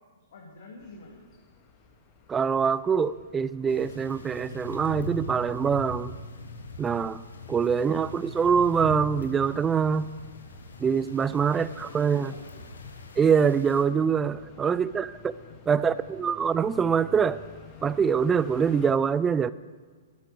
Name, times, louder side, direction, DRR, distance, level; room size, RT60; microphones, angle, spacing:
voice 1, 0.3-1.3 11.2-12.7 14.5-14.8 15.4-16.0, left 3 dB, 65° left, 0 dB, 2.2 m, -49 dB
sound 1, 0.8-18.9, left 3 dB, 40° left, 2.1 m, -53 dB
voice 2, 2.3-6.1 6.8-7.2 7.5-10.0 10.8-12.3 13.2-15.4 15.7-17.4 17.8-19.5, right 6 dB, 15° right, 17 dB, 0.4 m, -24 dB
sound 2, 3.7-13.8, left 3 dB, 80° left, 1.5 m, -41 dB
13.0 x 12.0 x 6.5 m, 1.5 s
hypercardioid pair, 120°, 0 cm